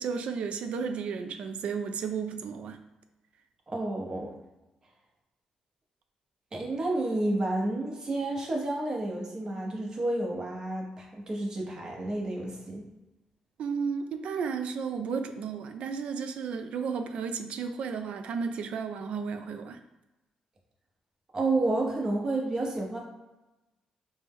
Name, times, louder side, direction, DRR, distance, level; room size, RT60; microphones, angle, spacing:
voice 1, 0.0-2.8 13.6-19.8, right 6 dB, 70° right, 7 dB, 0.3 m, -33 dB
voice 2, 3.7-4.3 6.5-12.8 21.3-23.0, right 2 dB, 30° right, -1 dB, 0.9 m, -30 dB
4.3 x 2.1 x 3.5 m, 1.0 s
cardioid pair, 120°, 2 cm